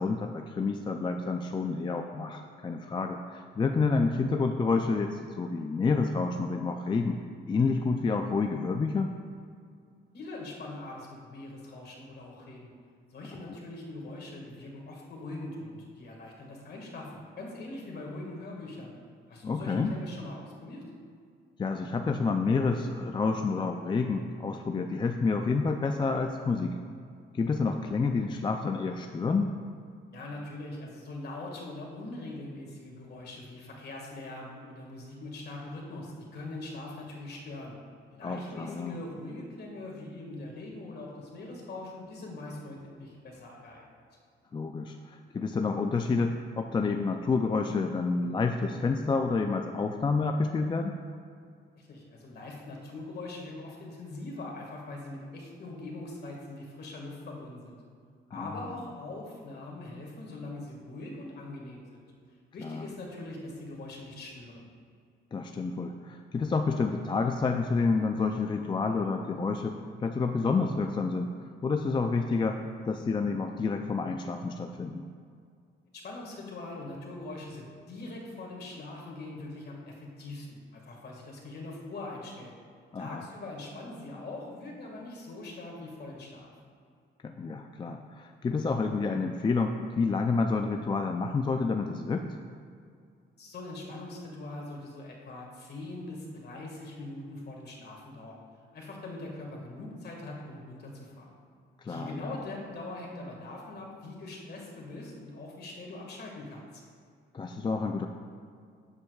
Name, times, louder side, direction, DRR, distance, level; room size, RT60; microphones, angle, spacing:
voice 1, 0.0-7.2 7.5-9.1 13.5-13.6 19.4-19.9 21.6-26.8 27.3-29.5 38.2-39.0 44.5-51.0 58.3-58.6 62.6-62.9 65.3-71.3 71.6-75.0 82.9-83.2 87.2-92.3 101.8-102.3 107.3-108.1, left 4 dB, 25° left, 5 dB, 0.4 m, -29 dB
voice 2, 10.1-12.7 13.1-18.9 19.3-20.9 30.1-37.8 38.1-43.8 51.8-57.8 58.3-62.0 62.5-64.6 75.9-82.5 83.0-86.5 93.4-98.4 98.7-101.4 101.9-106.8, left 2 dB, 55° left, -1 dB, 1.9 m, -42 dB
11.0 x 7.3 x 2.4 m, 2.3 s
cardioid pair, 90°, 20 cm